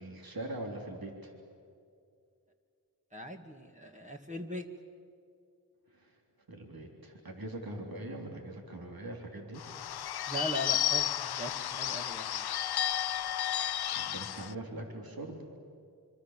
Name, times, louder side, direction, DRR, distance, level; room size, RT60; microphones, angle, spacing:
voice 1, 0.0-1.3 5.9-6.2 6.5-9.6 13.9-15.5, right 1 dB, 65° right, 2 dB, 3.5 m, -42 dB
voice 2, 3.1-4.7 10.3-12.5, equal, 20° right, 3 dB, 2.0 m, -39 dB
Bird / Bell, 9.6-14.5, left 11 dB, 80° left, 0.5 m, -32 dB
26.0 x 25.0 x 7.5 m, 2.4 s
cardioid pair, 40°, 38 cm